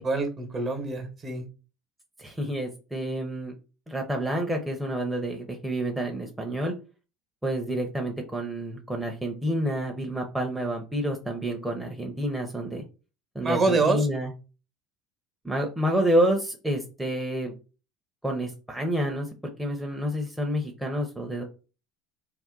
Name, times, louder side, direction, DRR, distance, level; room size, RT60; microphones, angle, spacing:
voice 1, 0.0-1.4 13.4-14.1, right 3 dB, 40° right, 5 dB, 1.1 m, -25 dB
voice 2, 2.2-3.5 3.9-6.7 7.4-12.8 13.3-14.3 15.4-17.5 18.2-19.3 19.6-21.4, right 1 dB, 5° right, 1 dB, 0.7 m, -28 dB
2.6 x 2.1 x 3.7 m, 0.32 s
hypercardioid pair, 75°, 0 cm